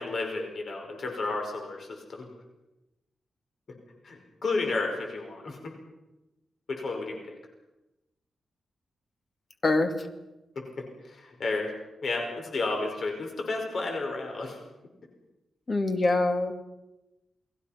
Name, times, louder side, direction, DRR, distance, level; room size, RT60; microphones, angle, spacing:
voice 1, 0.0-2.2 4.0-5.7 6.7-7.2 10.6-11.7 12.0-14.6, left 3 dB, 55° left, 2 dB, 5.3 m, -32 dB
voice 2, 9.6-10.0 15.7-16.5, left 2 dB, 35° left, 6 dB, 2.4 m, -24 dB
30.0 x 21.5 x 5.9 m, 0.99 s
wide cardioid pair, 140°, 0 cm